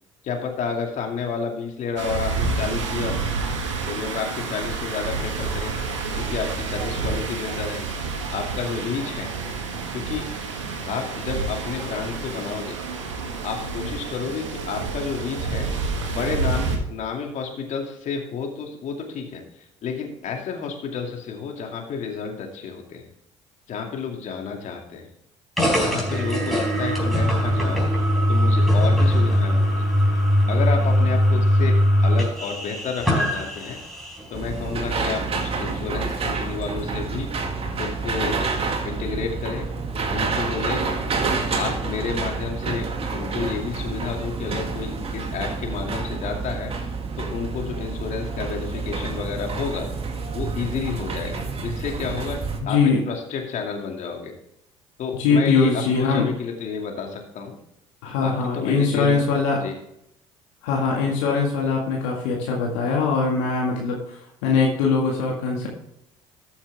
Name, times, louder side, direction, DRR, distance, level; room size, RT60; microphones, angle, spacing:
voice 1, 0.2-3.2 3.9-7.8 8.3-9.3 9.9-10.3 10.9-12.8 13.4-15.7 16.1-19.4 19.8-23.0 23.7-25.1 25.8-27.9 28.3-29.9 30.5-31.8 32.0-33.8 34.3-37.3 37.8-38.4 38.8-39.7 40.1-40.9 41.6-42.9 43.1-46.7 47.2-49.9 50.3-52.4 52.6-52.8 53.1-54.3 55.0-57.6 58.2-59.2 59.6-59.7, left 6 dB, 55° left, 2 dB, 2.4 m, -30 dB
sound 1, 2.0-16.8, right 4 dB, 90° right, 1.5 m, -29 dB
sound 2, 25.6-34.3, equal, ahead, 4.3 m, -20 dB
sound 3, 34.3-52.6, right 4 dB, 40° right, 2.1 m, -28 dB
voice 2, 52.6-53.0 55.1-56.2 58.0-59.6 60.6-65.7, left 4 dB, 75° left, -1 dB, 1.9 m, -22 dB
13.5 x 7.1 x 3.4 m, 0.78 s
hypercardioid pair, 60°, 15 cm